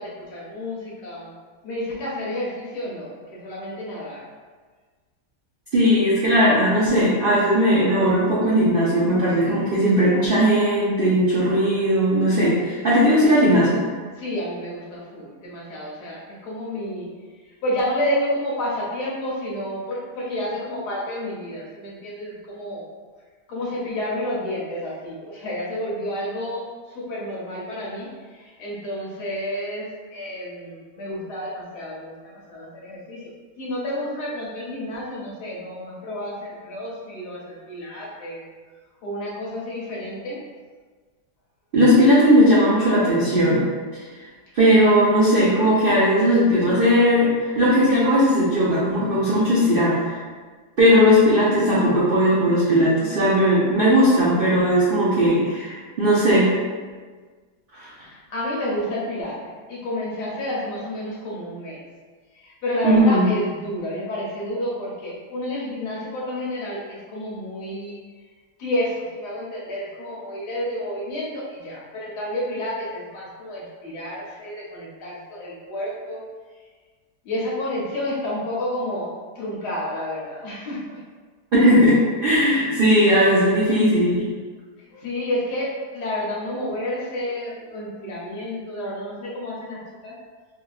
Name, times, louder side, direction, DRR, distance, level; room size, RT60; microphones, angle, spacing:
voice 1, 0.0-1.3 1.6-4.2 14.1-17.1 17.4-22.8 23.5-33.3 33.6-38.4 39.0-40.4 49.5-50.0 57.9-61.8 62.3-68.0 68.6-76.2 77.2-79.1 79.3-81.0 84.9-90.1, left 1 dB, 75° left, -5 dB, 1.4 m, -30 dB
voice 2, 5.7-13.8 41.7-43.6 44.5-50.2 50.8-56.5 57.8-57.9 62.8-63.3 81.5-84.3, equal, 75° right, -8 dB, 0.5 m, -18 dB
3.3 x 2.8 x 2.4 m, 1.5 s
omnidirectional pair, 1.8 m